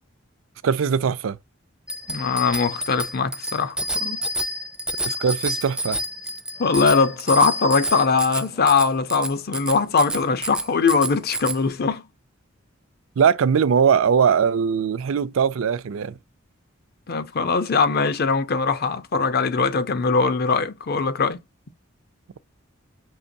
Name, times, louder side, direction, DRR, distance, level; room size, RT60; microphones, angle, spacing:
voice 1, 0.6-1.4 5.0-6.0 13.2-16.1, right 7 dB, 75° right, 0.4 m, -20 dB
Bicycle bell, 1.9-11.6, equal, 5° right, 0.4 m, -29 dB
voice 2, 2.1-4.2 6.6-12.0 17.1-21.4, left 4 dB, 50° left, 0.6 m, -21 dB
5.5 x 2.9 x 2.6 m
head